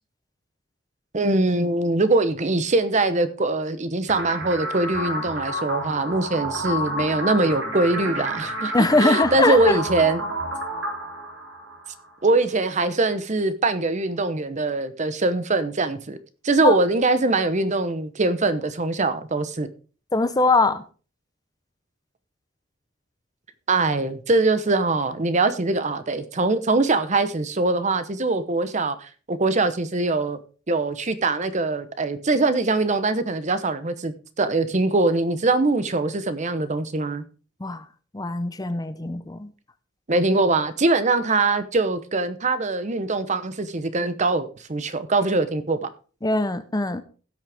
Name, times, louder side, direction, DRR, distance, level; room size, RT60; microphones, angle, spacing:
voice 1, 1.1-8.7 9.0-10.2 12.2-16.2 16.4-19.7 23.7-30.4 30.7-37.2 40.1-45.9, right 3 dB, 40° right, 0.8 m, -22 dB
sound 1, 4.1-12.1, equal, 90° right, 3.4 m, -30 dB
voice 2, 8.7-9.8 16.6-16.8 20.1-20.8 37.6-37.8 38.1-39.5 46.2-47.0, left 2 dB, 20° left, 0.7 m, -21 dB
16.5 x 6.3 x 3.5 m
head